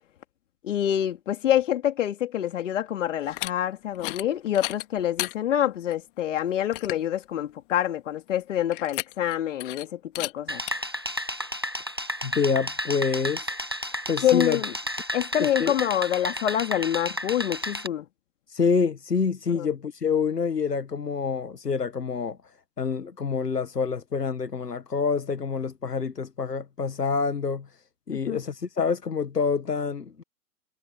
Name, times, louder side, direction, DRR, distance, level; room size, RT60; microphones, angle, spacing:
voice 1, 0.6-10.6 14.2-14.7 15.1-18.1 19.5-19.7 28.3-28.4, left 11 dB, 50° left, 3.8 m, -26 dB
sound 1, 3.2-3.5 3.9-4.3 4.5-5.3 5.9-6.0 6.4-6.5 6.7-7.1 8.7-9.3 9.6-9.8 10.1-10.3 10.7-10.8, left 19 dB, 35° left, 2.2 m, -33 dB
sound 2, 10.5-17.9, equal, 20° right, 0.3 m, -32 dB
voice 2, 12.2-13.5 14.1-14.6 15.4-15.7 18.5-22.4 22.8-27.7 28.1-30.2, left 5 dB, 85° left, 1.7 m, -27 dB
figure-of-eight pair, 130°, 47 cm